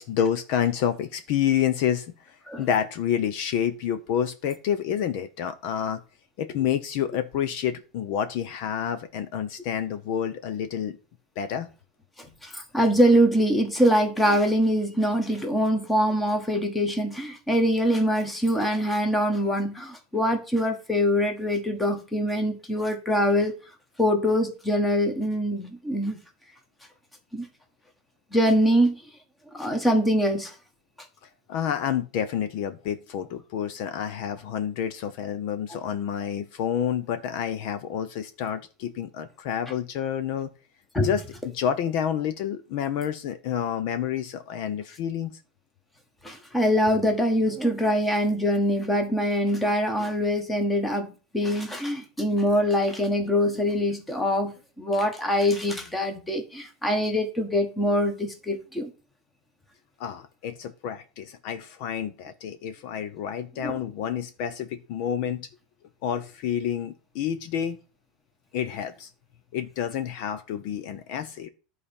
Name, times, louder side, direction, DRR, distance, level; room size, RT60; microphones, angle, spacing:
voice 1, 0.0-2.1 2.6-6.0 6.4-11.0 11.4-11.7 31.5-40.5 41.0-41.2 41.5-45.3 60.0-65.5 66.0-67.8 68.5-69.1 69.5-71.5, left 9 dB, 50° left, 0.8 m, -29 dB
voice 2, 12.2-23.5 24.0-26.2 27.3-27.5 28.3-29.0 29.5-30.5 40.9-41.1 46.2-58.9 63.6-63.8, equal, 5° left, 1.5 m, -24 dB
11.5 x 4.2 x 7.1 m
supercardioid pair, 175°, 0 cm